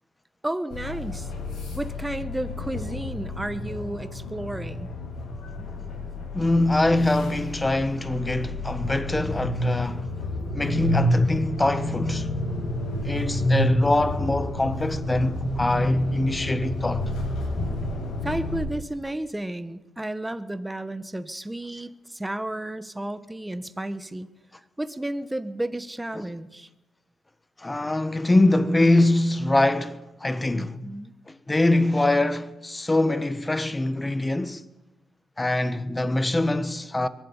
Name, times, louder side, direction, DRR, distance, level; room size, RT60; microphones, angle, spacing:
voice 1, 0.4-1.3 1.7-4.9 18.2-24.3 24.8-26.7 30.5-31.1, right 1 dB, 10° right, 1.2 m, -32 dB
sound 1, 0.7-18.6, left 1 dB, 75° left, 7.9 m, -29 dB
voice 2, 6.3-10.1 10.5-12.3 13.0-17.1 26.1-26.2 27.6-30.9 31.3-34.6 35.4-37.1, left 2 dB, 15° left, 1.3 m, -24 dB
22.5 x 12.0 x 9.6 m
cardioid pair, 90°, 0 cm